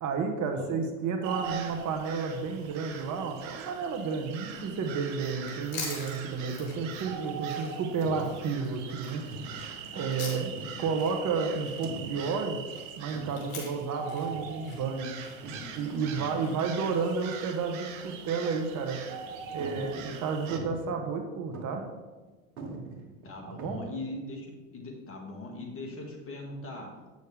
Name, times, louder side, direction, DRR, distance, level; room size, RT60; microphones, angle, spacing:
voice 1, 0.0-9.2 9.9-10.5 10.8-12.6 13.0-15.1 15.7-19.0 19.5-21.8 23.6-23.8, right 5 dB, 45° right, 4 dB, 1.3 m, -31 dB
sound 1, 1.2-20.6, right 7 dB, 65° right, 1.1 m, -42 dB
sound 2, 5.1-17.3, left 4 dB, 70° left, 2.3 m, -45 dB
sound 3, 6.7-7.3 8.0-8.6 9.3-9.9 10.6-11.1 11.8-12.5 13.1-13.7 14.3-14.7 15.4-16.3 16.7-17.3 17.6-17.7 18.3-18.5 19.0-19.1 19.6-21.1 21.5-22.0 22.3-22.4 22.6-23.9, right 2 dB, 80° right, 1.5 m, -44 dB
voice 2, 16.2-16.5 23.2-26.9, left 2 dB, 30° left, 1 dB, 1.9 m, -40 dB
8.2 x 6.5 x 3.5 m, 1.2 s
hypercardioid pair, 85°, 41 cm